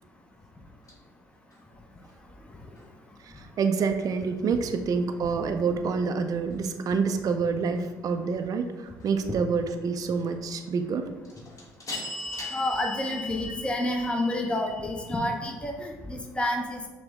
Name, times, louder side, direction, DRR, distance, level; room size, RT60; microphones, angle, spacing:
sound 1, 0.9-1.0 11.3-15.2, left 3 dB, 35° left, 1.3 m, -38 dB
voice 1, 3.4-11.1, right 5 dB, 40° right, 7 dB, 0.4 m, -27 dB
voice 2, 12.5-16.9, left 1 dB, 10° left, 2 dB, 0.6 m, -29 dB
5.9 x 2.1 x 3.5 m, 1.3 s
hypercardioid pair, 55°, 9 cm